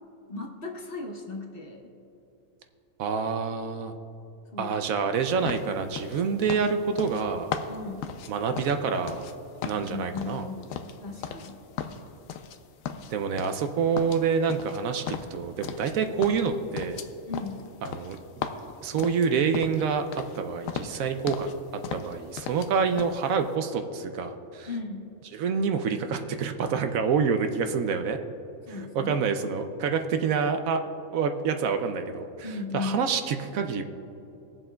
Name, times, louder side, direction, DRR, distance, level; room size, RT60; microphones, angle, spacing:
voice 1, 0.3-1.9 4.5-4.8 7.7-8.1 9.8-11.6 17.3-17.7 24.6-25.1 28.6-29.3 32.4-33.1, left 3 dB, 45° left, 2 dB, 0.9 m, -36 dB
voice 2, 3.0-3.9 4.6-7.5 8.3-9.2 9.6-10.4 13.1-17.0 17.8-18.2 18.8-24.7 25.3-28.2 28.7-30.8 31.1-33.8, right 6 dB, 70° right, 7 dB, 1.0 m, -27 dB
sound 1, 5.5-9.3 9.6-11.5 11.8-12.6 12.9-13.7 14.0-16.0 16.2-19.9 20.1-20.4 20.7-21.6 21.8-22.7 23.0-23.2, left 7 dB, 70° left, 0.9 m, -36 dB
22.0 x 7.4 x 2.3 m, 2.8 s
omnidirectional pair, 1.5 m